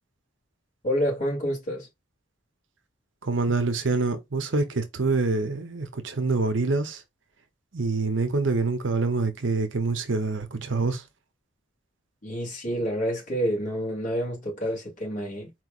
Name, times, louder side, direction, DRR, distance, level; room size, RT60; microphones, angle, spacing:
voice 1, 0.8-1.9 12.2-15.5, equal, 45° left, 2.4 m, -28 dB
voice 2, 3.2-7.0 7.7-11.0, right 3 dB, 75° right, 0.9 m, -26 dB
4.5 x 3.0 x 2.5 m
head